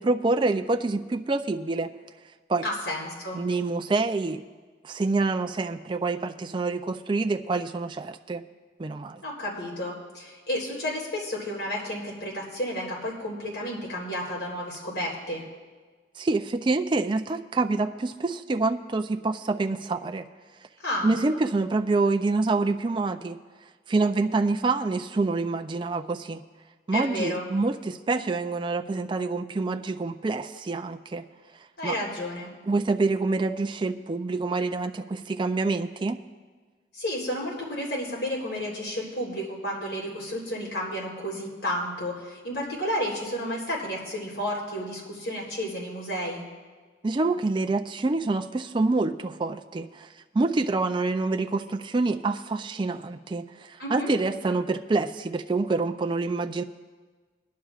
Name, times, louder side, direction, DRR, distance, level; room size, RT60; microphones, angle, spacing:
voice 1, 0.0-1.9 2.5-2.7 3.3-4.4 4.8-8.4 8.8-9.2 16.2-20.2 21.0-23.4 23.9-26.4 26.9-31.3 31.8-31.9 32.7-36.2 47.0-50.1 50.3-56.6, right 3 dB, 25° right, 5 dB, 0.4 m, -26 dB
voice 2, 2.6-3.4 9.2-15.4 20.8-21.1 26.9-27.5 31.8-32.5 36.9-46.4 53.8-54.1, left 1 dB, 80° left, -3 dB, 3.7 m, -32 dB
22.0 x 11.5 x 2.4 m, 1.4 s
head